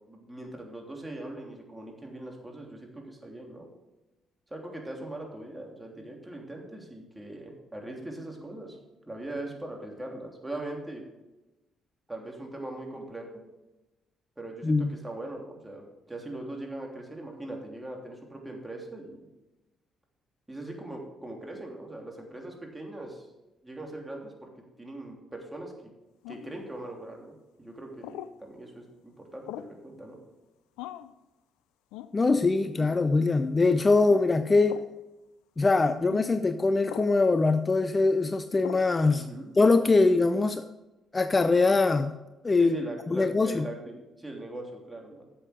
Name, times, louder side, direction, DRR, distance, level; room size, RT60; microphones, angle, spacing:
voice 1, 0.1-3.7 4.5-8.8 9.1-11.0 12.1-13.4 14.4-19.3 20.5-23.3 23.6-24.5 24.8-25.9 26.3-30.2 39.1-39.5 42.6-45.2, right 1 dB, 15° right, 0 dB, 3.2 m, -40 dB
voice 2, 14.6-15.0 32.1-34.8 35.6-39.3 39.6-40.7 41.1-42.1 42.4-42.8 43.1-43.6, left 3 dB, 30° left, 11 dB, 0.6 m, -23 dB
sound 1, 26.2-26.6 28.0-28.4 29.5-29.8 30.8-31.1 31.9-32.1 32.8-33.0 34.1-34.3 34.7-34.9 36.1-36.3 36.9-37.2 38.6-38.9, left 13 dB, 80° left, 0.3 m, -40 dB
11.0 x 7.7 x 5.2 m, 1.0 s
hypercardioid pair, 50°, 0 cm